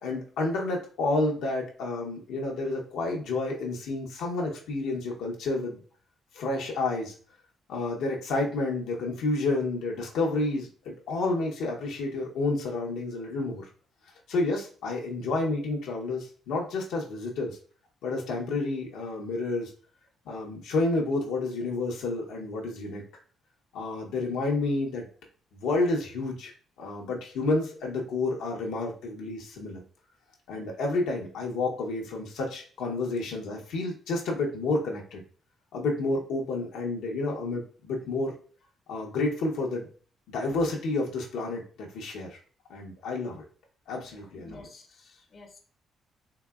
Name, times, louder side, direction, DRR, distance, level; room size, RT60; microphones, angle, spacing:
voice 1, 0.0-5.8 6.3-7.1 7.7-13.6 14.3-17.6 18.0-19.7 20.3-23.0 23.7-25.1 25.5-26.5 26.8-29.8 30.5-35.2 35.7-38.3 38.9-39.9 40.3-42.4 42.7-43.4 43.9-44.6, left 2 dB, 90° left, -1 dB, 0.9 m, -30 dB
voice 2, 44.1-45.6, left 2 dB, 45° left, 3 dB, 0.6 m, -50 dB
3.8 x 3.0 x 2.3 m, 0.42 s
cardioid pair, 90°, 0 cm